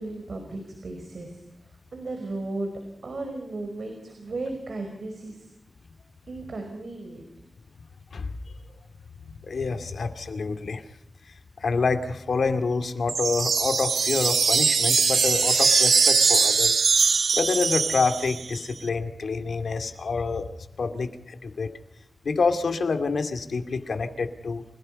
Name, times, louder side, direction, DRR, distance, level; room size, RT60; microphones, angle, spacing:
voice 1, 0.0-1.4 1.9-2.7 3.0-5.5 6.3-7.3, right 2 dB, 65° right, 4 dB, 5.0 m, -35 dB
voice 2, 8.1-8.6 9.4-10.9 11.3-20.5 20.8-21.7 22.2-24.6, left 4 dB, 80° left, 8 dB, 2.5 m, -27 dB
sound 1, 13.1-18.6, right 5 dB, 85° right, 1.6 m, -21 dB
30.0 x 17.0 x 5.4 m, 0.79 s
wide cardioid pair, 125°, 0 cm